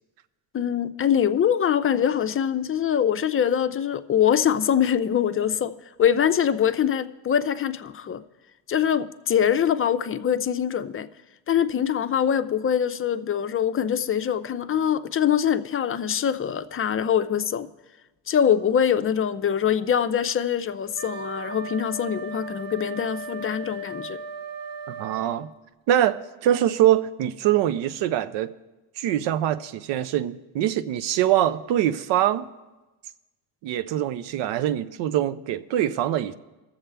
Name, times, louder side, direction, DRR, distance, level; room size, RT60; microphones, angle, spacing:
voice 1, 0.5-8.2 8.7-11.1 11.5-17.7 18.3-24.2, left 8 dB, 30° left, 0.5 m, -23 dB
Wind instrument woodwind instrument, 20.9-25.4, right 3 dB, 50° right, 1.4 m, -36 dB
voice 2, 24.9-25.5 25.9-28.5 29.0-32.5 33.6-36.3, right 12 dB, 80° right, 0.6 m, -23 dB
21.5 x 7.3 x 3.4 m
cardioid pair, 90°, 43 cm